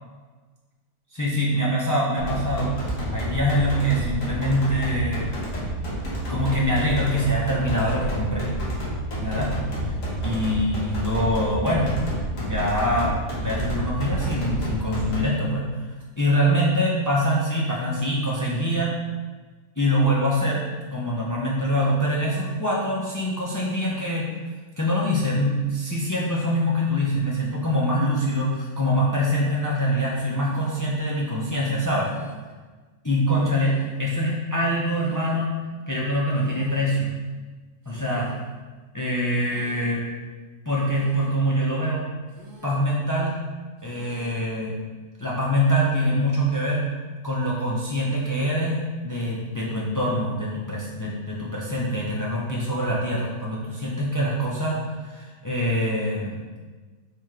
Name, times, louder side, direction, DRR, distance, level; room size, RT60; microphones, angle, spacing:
voice 1, 1.1-2.8 3.1-5.3 6.3-8.6 9.2-9.5 9.8-10.0 10.2-11.9 12.3-19.0 19.8-20.6 20.9-24.3 24.8-32.1 33.0-35.5 35.9-37.1 37.9-38.3 38.9-40.0 40.7-42.1 42.6-43.4 43.8-44.7 45.2-46.9 47.2-56.4, equal, 30° left, -5 dB, 0.3 m, -24 dB
sound 1, 2.2-15.2, right 1 dB, 75° left, 1.5 m, -29 dB
sound 2, 30.3-31.0 31.8-32.6 33.3-34.1 34.8-35.5 36.3-37.0 37.8-38.5 39.3-40.0 40.8-41.5 42.3-43.0 43.8-44.5, right 3 dB, 65° right, 1.1 m, -46 dB
4.6 x 3.2 x 3.6 m, 1.3 s
omnidirectional pair, 1.4 m